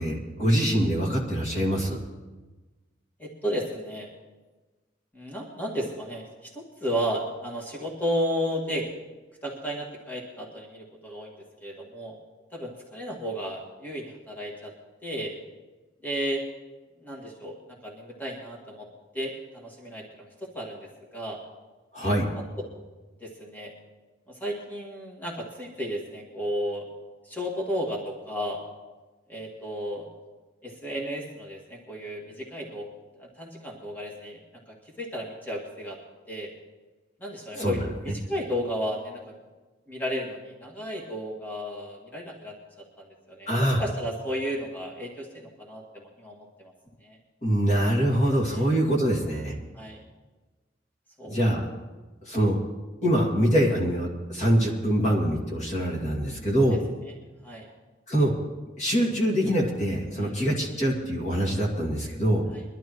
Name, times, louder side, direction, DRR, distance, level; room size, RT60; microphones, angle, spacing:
voice 1, 0.0-2.0 21.9-22.3 37.5-37.8 43.5-43.8 47.4-49.5 51.3-51.6 52.3-52.6 53.0-56.8 58.1-58.3 58.8-62.4, equal, 40° left, -2 dB, 2.3 m, -24 dB
voice 2, 3.2-4.1 5.1-8.8 9.4-11.3 11.6-12.1 12.5-14.7 15.0-15.3 16.0-16.4 17.0-17.6 17.8-18.9 19.1-20.3 20.5-21.4 23.2-23.7 24.3-26.9 27.3-28.6 29.3-30.1 30.6-32.9 33.2-34.4 35.0-36.0 36.3-36.5 37.2-39.4 39.9-42.5 43.0-46.7 47.0-47.2 48.5-48.7 49.7-50.0 51.2-51.3 57.4-57.7 60.2-60.4 62.5-62.6, equal, 10° left, -2 dB, 2.0 m, -33 dB
23.0 x 12.5 x 3.1 m, 1.2 s
head